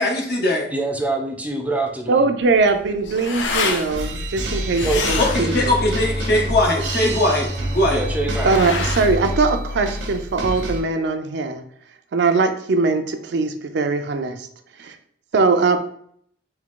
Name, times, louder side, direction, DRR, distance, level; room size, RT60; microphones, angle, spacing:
voice 1, 0.0-0.6 5.2-8.0, left 1 dB, 60° left, 0 dB, 0.9 m, -20 dB
voice 2, 0.7-2.3 4.8-5.2 7.9-8.6, right 2 dB, 10° right, 2 dB, 0.5 m, -25 dB
voice 3, 2.1-5.8 8.4-11.6 12.1-14.4 14.8-15.0 15.3-15.8, right 4 dB, 65° right, 7 dB, 0.4 m, -21 dB
sound 1, 2.4-10.3, left 4 dB, 75° left, 0.6 m, -29 dB
sound 2, 3.9-10.8, equal, 85° right, 0.9 m, -28 dB
sound 3, 5.3-9.3, equal, 40° left, 1.2 m, -29 dB
3.6 x 2.8 x 3.7 m, 0.64 s
head